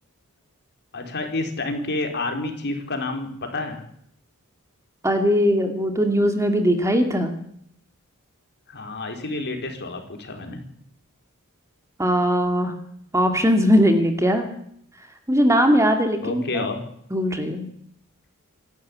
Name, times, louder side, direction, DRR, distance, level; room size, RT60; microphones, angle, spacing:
voice 1, 0.9-3.8 8.7-10.6 16.2-16.8, left 2 dB, 50° left, 4 dB, 4.4 m, -29 dB
voice 2, 5.0-7.3 12.0-12.7 13.1-14.5 15.3-16.7 17.1-17.7, equal, 15° right, 6 dB, 2.4 m, -20 dB
26.5 x 12.0 x 8.8 m, 0.71 s
head